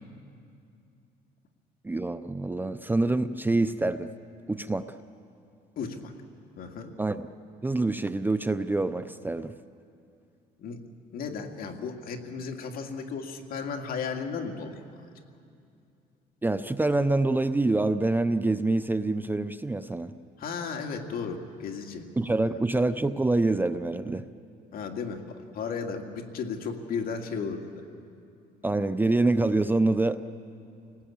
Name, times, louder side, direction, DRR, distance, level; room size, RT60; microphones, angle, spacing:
voice 1, 1.8-4.1 4.5-5.0 7.0-7.3 7.6-9.6 16.4-20.1 22.2-24.3 28.6-30.2, right 2 dB, 10° right, 11 dB, 0.6 m, -26 dB
voice 2, 5.8-6.1 6.6-6.9 10.6-10.8 11.1-14.8 20.4-22.0 22.4-22.5 24.7-27.8, left 5 dB, 60° left, 3 dB, 2.4 m, -34 dB
29.0 x 19.0 x 8.7 m, 2.5 s
cardioid pair, 110°, 17 cm